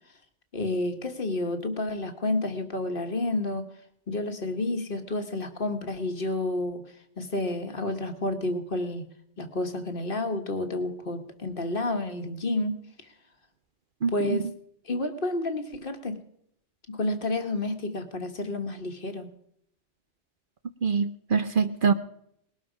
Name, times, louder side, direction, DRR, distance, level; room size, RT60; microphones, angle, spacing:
voice 1, 0.5-3.6 4.1-6.8 7.2-9.1 9.4-12.8 14.1-14.5 14.8-16.2 16.9-19.3, left 2 dB, 50° left, 6 dB, 1.6 m, -30 dB
voice 2, 14.0-14.4 20.8-21.9, right 5 dB, 50° right, 10 dB, 0.9 m, -24 dB
19.5 x 12.5 x 5.0 m, 0.73 s
omnidirectional pair, 1.2 m